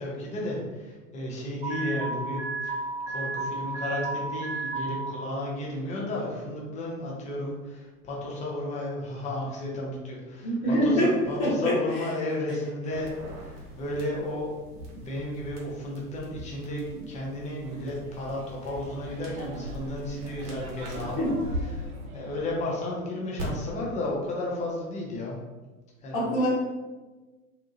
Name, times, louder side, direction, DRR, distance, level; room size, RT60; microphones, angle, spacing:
voice 1, 0.0-21.2 21.7-25.4 26.0-26.2, left 1 dB, 15° left, -4 dB, 0.5 m, -33 dB
Alarm, 1.6-5.1, right 3 dB, 20° right, 0.9 m, -32 dB
voice 2, 10.4-11.1 11.4-12.1 16.9-17.0 21.2-21.3 26.1-26.5, equal, 35° left, -7 dB, 1.2 m, -25 dB
sound 1, 12.9-21.6 23.4-23.5, equal, 55° right, 1.1 m, -42 dB
sound 2, 17.6-22.7, right 2 dB, 70° right, 0.7 m, -44 dB
2.6 x 2.2 x 2.7 m, 1.2 s
figure-of-eight pair, 95°, 44 cm